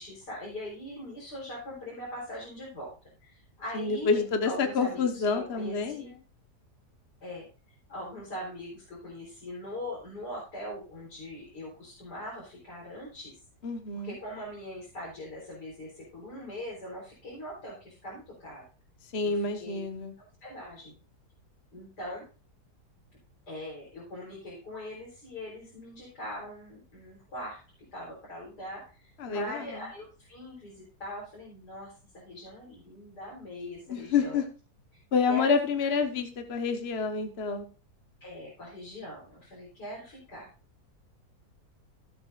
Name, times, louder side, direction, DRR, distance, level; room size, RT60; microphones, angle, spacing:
voice 1, 0.0-2.9 3.2-4.2 4.4-6.1 7.2-13.4 14.0-18.6 19.2-19.8 20.4-20.9 21.7-22.2 23.5-27.6 27.9-34.4 34.9-35.0 35.3-35.5 38.2-40.5, left 1 dB, 75° left, -5 dB, 4.7 m, -41 dB
voice 2, 3.7-6.2 13.6-14.2 19.0-20.1 29.2-29.9 33.9-34.4 35.1-37.7, left 5 dB, 40° left, 6 dB, 1.4 m, -28 dB
16.0 x 8.0 x 2.5 m, 0.35 s
omnidirectional pair, 1.8 m